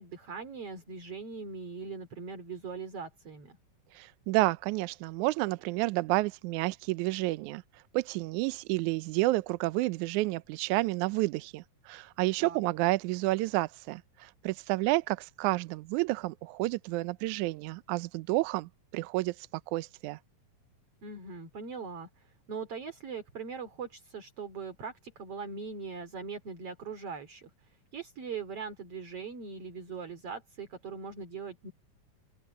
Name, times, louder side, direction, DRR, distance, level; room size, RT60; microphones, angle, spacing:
voice 1, 0.0-3.6 12.4-12.6 21.0-27.5 27.9-31.7, right 5 dB, 45° right, 4.0 m, -41 dB
voice 2, 3.9-7.6 7.9-19.4 19.7-20.2, right 20 dB, 85° right, 1.7 m, -30 dB
open air
omnidirectional pair, 4.1 m